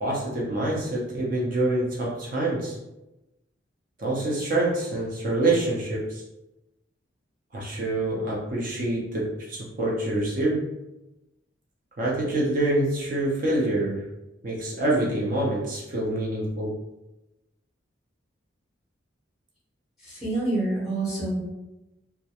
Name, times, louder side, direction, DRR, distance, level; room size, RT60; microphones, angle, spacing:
voice 1, 0.0-2.8 4.0-6.2 7.5-10.6 12.0-14.0 14.4-16.7, right 2 dB, 45° right, -4 dB, 0.5 m, -26 dB
voice 2, 20.0-21.4, right 2 dB, ahead, -9 dB, 0.7 m, -27 dB
2.3 x 2.1 x 2.8 m, 0.96 s
head